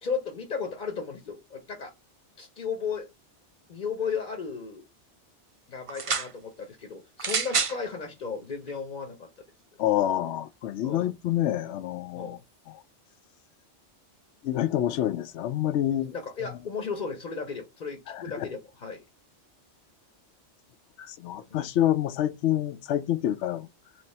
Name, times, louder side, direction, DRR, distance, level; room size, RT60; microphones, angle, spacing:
voice 1, 0.0-1.9 2.4-3.1 3.7-4.8 5.7-9.3 10.8-11.1 12.1-12.4 15.8-19.0 21.5-21.7, left 5 dB, 45° left, 0.9 m, -35 dB
sound 1, 5.9-6.3 7.2-7.8 8.7-8.8, right 5 dB, 40° right, 0.4 m, -27 dB
voice 2, 9.8-12.4 12.7-12.8 14.4-16.1 18.1-18.4 21.0-23.7, left 12 dB, 75° left, 0.9 m, -27 dB
3.3 x 2.9 x 4.1 m
omnidirectional pair, 1.2 m